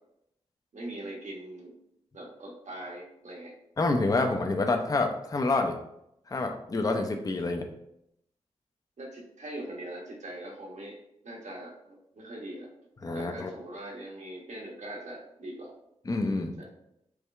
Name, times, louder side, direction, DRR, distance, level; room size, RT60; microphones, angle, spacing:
voice 1, 0.7-1.7 2.1-3.5 4.2-4.3 9.0-11.0 11.2-12.7 13.1-15.7 16.6-16.7, right 1 dB, 65° right, -2 dB, 1.2 m, -41 dB
voice 2, 3.8-5.8 6.3-7.7 13.0-13.5 16.1-16.5, left 3 dB, 30° left, 4 dB, 0.5 m, -27 dB
4.6 x 2.2 x 3.2 m, 0.79 s
cardioid pair, 45°, 13 cm